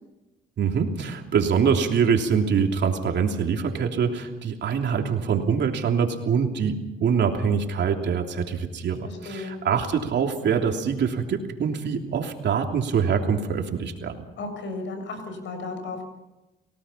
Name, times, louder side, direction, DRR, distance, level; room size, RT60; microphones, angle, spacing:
voice 1, 0.6-14.1, right 6 dB, 65° right, 3 dB, 3.1 m, -24 dB
voice 2, 9.0-9.6 14.4-16.0, left 3 dB, 70° left, 6 dB, 7.1 m, -34 dB
30.0 x 18.0 x 5.7 m, 1.0 s
cardioid pair, 90°, 20 cm